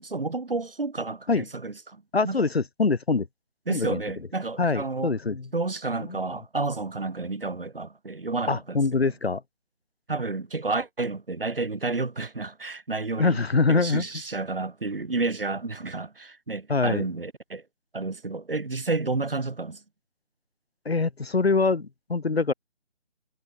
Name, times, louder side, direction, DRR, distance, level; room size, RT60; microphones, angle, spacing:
voice 1, 0.0-2.4 3.7-5.1 5.5-9.1 10.1-13.4 13.7-17.6 17.9-19.8, right 3 dB, 55° right, 1.8 m, -31 dB
voice 2, 2.1-3.3 3.7-4.0 4.6-5.5 8.5-9.4 13.2-14.1 16.7-17.0 20.8-22.5, left 4 dB, 60° left, 0.9 m, -24 dB
figure-of-eight pair, 160°, 34 cm